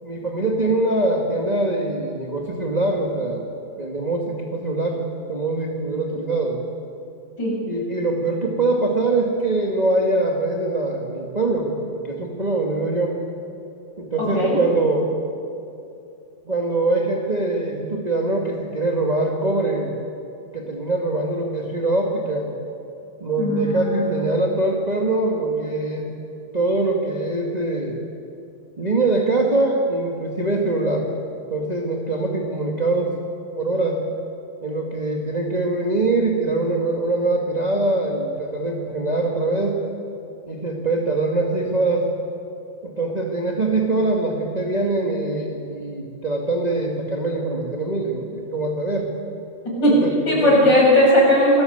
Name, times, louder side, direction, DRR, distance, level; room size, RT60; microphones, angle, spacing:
voice 1, 0.0-3.4 3.8-5.0 5.3-6.6 7.6-13.2 14.0-15.1 16.4-20.0 20.5-22.5 23.2-26.1 26.5-28.0 28.8-31.1 31.5-34.0 34.6-39.8 40.5-42.1 42.8-49.1 50.0-50.6, right 2 dB, 15° right, -1 dB, 1.3 m, -23 dB
voice 2, 14.2-14.6 23.4-24.3 49.8-50.0 50.2-51.6, equal, 25° left, -4 dB, 8.4 m, -17 dB
29.0 x 20.0 x 8.1 m, 2.7 s
omnidirectional pair, 4.3 m